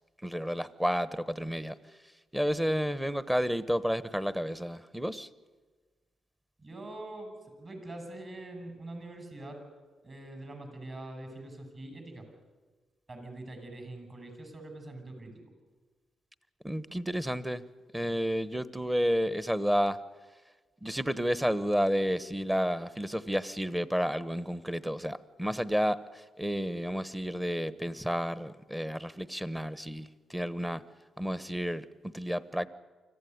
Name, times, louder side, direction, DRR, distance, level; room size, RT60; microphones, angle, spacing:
voice 1, 0.2-1.8 2.3-5.3 16.6-17.6 17.9-20.0 20.8-30.8 31.2-32.7, equal, 5° right, 15 dB, 1.1 m, -31 dB
voice 2, 6.6-9.6 10.0-12.3 13.1-15.4, right 2 dB, 35° right, 6 dB, 7.2 m, -44 dB
24.5 x 15.0 x 9.6 m, 1.4 s
cardioid pair, 75°, 0 cm